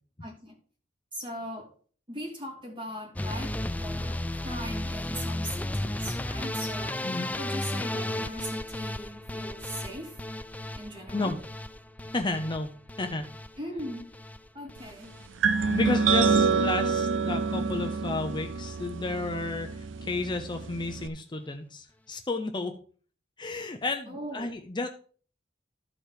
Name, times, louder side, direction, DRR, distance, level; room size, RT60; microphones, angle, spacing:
voice 1, 0.2-0.6 1.1-1.7 2.1-7.1 7.3-10.2 10.8-11.3 13.6-14.1 14.5-15.2 24.1-24.6, equal, 25° right, 2.4 m, -39 dB
sound 1, 3.2-15.3 15.6-16.2 16.5-17.1 17.4-17.6 18.0-18.1 18.3-18.4, left 1 dB, 10° left, 0.3 m, -35 dB
voice 2, 12.1-13.3 15.7-22.8 23.4-24.9, left 2 dB, 25° left, 0.7 m, -32 dB
sound 2, 15.4-21.1, right 5 dB, 75° right, 0.5 m, -27 dB
13.0 x 4.6 x 5.0 m
head